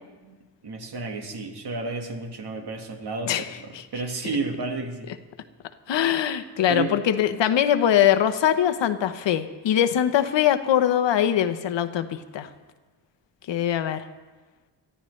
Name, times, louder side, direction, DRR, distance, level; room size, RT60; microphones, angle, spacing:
voice 1, 0.6-5.1 6.7-7.0, right 3 dB, 60° right, 4 dB, 1.8 m, -32 dB
voice 2, 5.9-12.5 13.5-14.0, left 10 dB, 80° left, 10 dB, 1.0 m, -22 dB
23.5 x 14.0 x 3.2 m, 1.3 s
cardioid pair, 95°, 43 cm